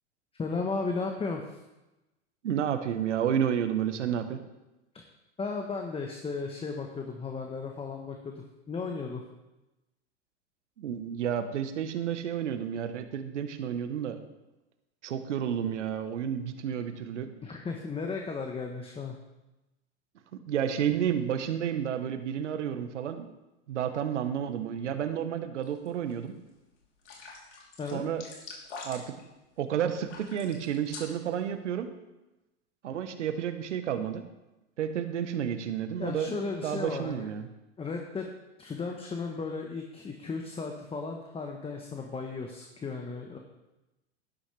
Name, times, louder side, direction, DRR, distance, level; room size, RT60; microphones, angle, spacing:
voice 1, 0.3-1.6 5.4-9.2 17.4-19.2 27.8-28.1 36.0-37.3 37.8-38.3 38.6-43.4, left 4 dB, 15° left, 3 dB, 1.1 m, -35 dB
voice 2, 2.4-4.4 10.8-14.2 15.0-17.3 20.5-23.3 23.7-26.4 27.9-28.2 28.8-29.2 29.6-31.9 32.8-34.3 34.8-37.5, right 9 dB, 85° right, 9 dB, 1.1 m, -31 dB
sound 1, 25.6-26.1 26.5-26.6 27.0-29.2 30.0-31.3, left 4 dB, 85° left, 3.4 m, -45 dB
11.5 x 11.5 x 3.3 m, 1.0 s
hypercardioid pair, 105°, 35 cm